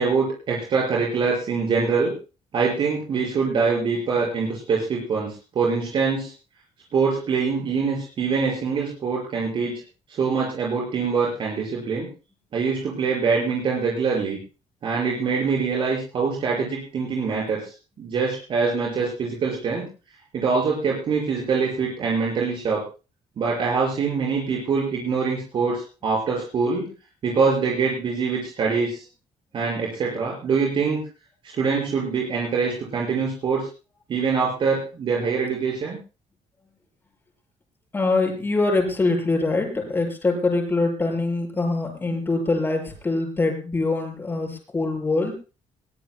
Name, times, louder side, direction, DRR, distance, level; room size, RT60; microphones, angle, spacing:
voice 1, 0.0-2.1 2.5-6.3 6.9-9.8 10.1-12.1 12.5-14.4 14.8-19.9 20.3-22.8 23.4-26.9 27.2-29.1 29.5-31.0 31.4-33.7 34.1-36.0, right 5 dB, 45° right, -2 dB, 5.8 m, -24 dB
voice 2, 37.9-45.3, left 3 dB, 15° left, 2 dB, 6.4 m, -23 dB
22.5 x 20.5 x 2.3 m, 0.34 s
cardioid pair, 160°, 12 cm